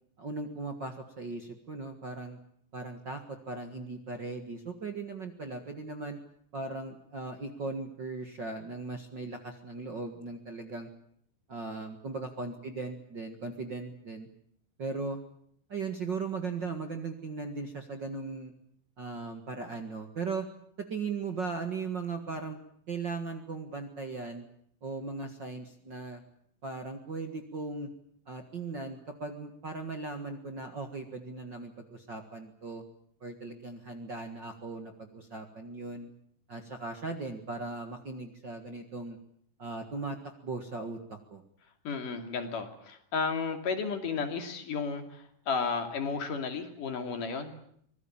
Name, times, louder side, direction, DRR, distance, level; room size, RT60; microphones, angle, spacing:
voice 1, 0.2-2.4 2.7-6.2 6.5-10.9 11.5-14.3 14.8-15.2 15.7-18.5 19.0-20.5 20.9-22.6 22.9-24.4 24.8-26.2 26.6-27.9 28.3-32.8 33.2-36.1 36.5-39.2 39.6-40.2 40.4-41.4, right 4 dB, 40° right, 5 dB, 1.8 m, -38 dB
voice 2, 41.9-47.5, left 5 dB, 65° left, 5 dB, 4.1 m, -33 dB
25.0 x 19.5 x 8.7 m, 0.67 s
omnidirectional pair, 4.1 m